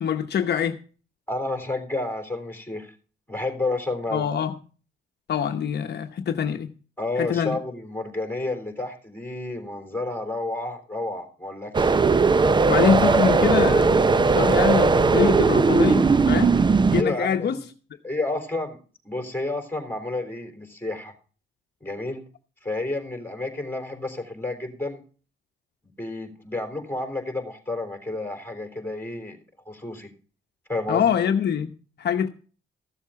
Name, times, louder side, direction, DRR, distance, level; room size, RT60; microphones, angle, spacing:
voice 1, 0.0-0.8 4.1-4.5 5.3-6.7 7.2-7.6 12.7-16.5 16.9-17.6 30.9-31.7 32.0-32.3, left 8 dB, 55° left, 1.0 m, -24 dB
voice 2, 1.3-2.9 3.3-4.3 7.0-12.0 17.0-17.6 18.0-18.8 19.0-21.1 21.8-22.3 22.6-25.0 26.0-29.4 29.7-30.1 30.7-31.1, left 2 dB, 10° left, 3.8 m, -30 dB
sound 1, 11.7-17.0, right 4 dB, 25° right, 0.6 m, -18 dB
14.5 x 7.3 x 5.7 m
cardioid pair, 90°, 20 cm